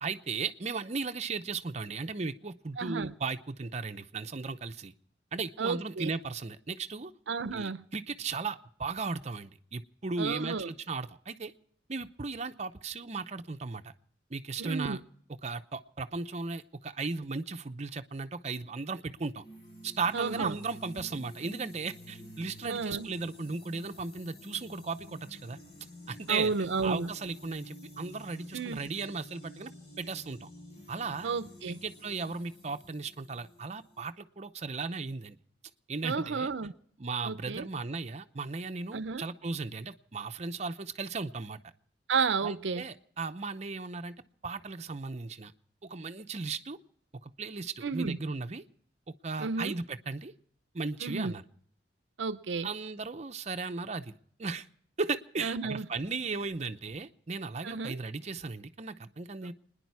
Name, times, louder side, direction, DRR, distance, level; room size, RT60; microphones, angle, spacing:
voice 1, 0.0-4.9 5.3-7.1 7.5-11.5 11.9-13.9 14.3-15.0 15.4-19.4 19.8-25.6 26.1-26.5 26.8-30.5 30.9-31.3 31.8-35.4 35.9-36.5 37.0-41.6 42.4-44.1 44.4-45.5 45.8-46.8 47.2-48.6 49.2-50.3 50.7-51.4 52.6-54.7 55.0-59.5, right 4 dB, 40° right, 0.7 m, -36 dB
voice 2, 2.8-3.1 5.6-6.1 7.3-7.9 10.2-10.7 14.6-15.0 20.1-20.6 22.6-23.1 26.3-27.1 28.5-28.8 31.2-31.8 36.0-36.7 37.2-37.7 38.9-39.2 42.1-42.8 47.8-48.2 49.4-49.8 51.0-51.3 52.2-52.7 55.4-55.9 57.6-58.0, right 4 dB, 80° right, 0.6 m, -32 dB
sound 1, 19.4-34.1, left 1 dB, 60° left, 5.1 m, -50 dB
29.5 x 10.5 x 4.7 m
head